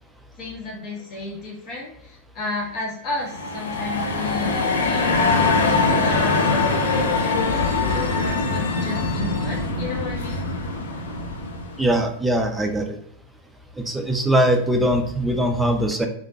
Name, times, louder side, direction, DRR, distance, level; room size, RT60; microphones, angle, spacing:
voice 1, 0.4-6.7 7.2-10.4, left 3 dB, 40° left, -2 dB, 1.0 m, -33 dB
sound 1, 3.2-11.9, left 3 dB, 65° left, 0.4 m, -22 dB
voice 2, 11.8-13.0 13.8-16.1, right 1 dB, 5° right, 3 dB, 0.5 m, -21 dB
3.5 x 2.6 x 2.7 m, 0.69 s
figure-of-eight pair, 90°, 0 cm